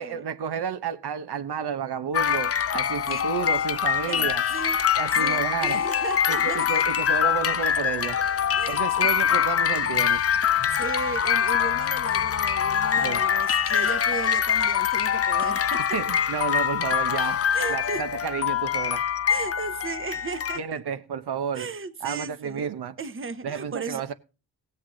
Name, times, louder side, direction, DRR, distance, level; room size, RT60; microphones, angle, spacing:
voice 1, 0.0-4.4 5.0-5.8 6.3-8.2 8.7-10.2 13.0-13.2 15.9-17.4 17.7-19.1 20.6-21.7 22.0-22.9 23.4-24.1, right 7 dB, 85° right, 0.9 m, -31 dB
sound 1, 2.1-20.6, left 8 dB, 40° left, 0.5 m, -24 dB
voice 2, 4.0-4.8 5.2-6.9 8.6-9.1 10.7-15.8 17.5-18.0 19.3-20.8 21.5-22.7 23.0-24.0, right 5 dB, 30° right, 0.9 m, -35 dB
17.5 x 7.8 x 3.8 m
wide cardioid pair, 115°, 39 cm